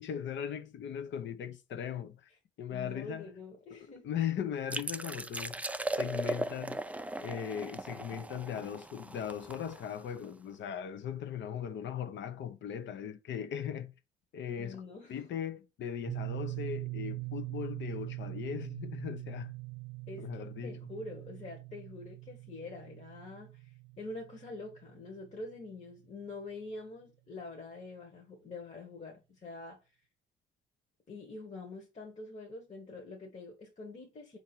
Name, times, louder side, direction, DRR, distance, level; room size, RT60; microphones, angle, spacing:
voice 1, 0.0-2.2 2.6-3.3 4.0-5.6 5.9-6.8 7.2-13.9 14.3-14.8 15.1-19.5 20.2-20.8, left 9 dB, 70° left, 0.7 m, -38 dB
voice 2, 2.7-4.2 14.6-15.2 20.1-29.8 31.1-34.4, left 3 dB, 35° left, 1.2 m, -45 dB
sound 1, 4.7-10.2, right 2 dB, 5° right, 0.3 m, -38 dB
sound 2, 16.0-26.0, right 24 dB, 70° right, 0.5 m, -42 dB
4.3 x 2.8 x 4.3 m
cardioid pair, 90°, 20 cm